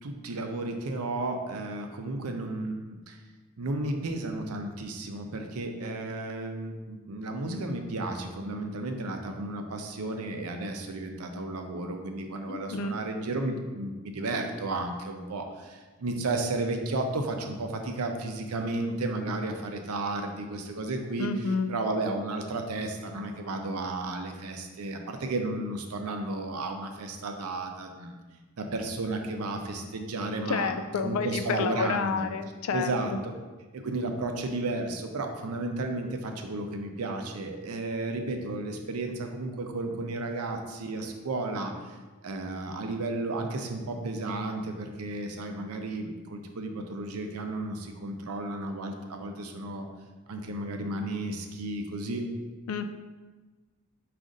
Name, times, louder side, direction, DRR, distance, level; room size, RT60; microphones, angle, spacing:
voice 1, 0.0-3.2 3.6-28.2 28.6-30.7 31.0-32.3 32.7-33.3 33.7-42.0 42.2-49.9 50.3-52.3, right 2 dB, 85° right, 4 dB, 0.5 m, -33 dB
voice 2, 12.5-13.0 21.2-21.7 30.5-32.9 52.7-52.9, left 5 dB, 70° left, 9 dB, 0.3 m, -29 dB
5.1 x 2.5 x 3.7 m, 1.3 s
head